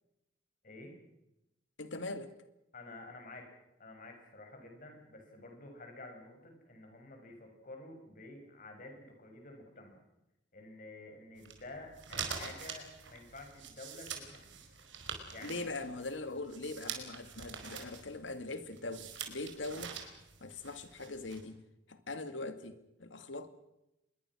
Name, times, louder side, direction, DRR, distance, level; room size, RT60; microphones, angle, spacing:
voice 1, 0.6-0.9 2.7-3.5 3.8-10.0 10.5-14.6 15.3-15.7, left 2 dB, 45° left, 7.2 m, -50 dB
voice 2, 1.8-2.3 15.4-20.0 20.4-21.6 21.9-23.5, left 2 dB, 80° left, 2.3 m, -41 dB
sound 1, 11.4-21.4, right 6 dB, 75° right, 4.8 m, -45 dB
26.0 x 22.0 x 6.3 m
head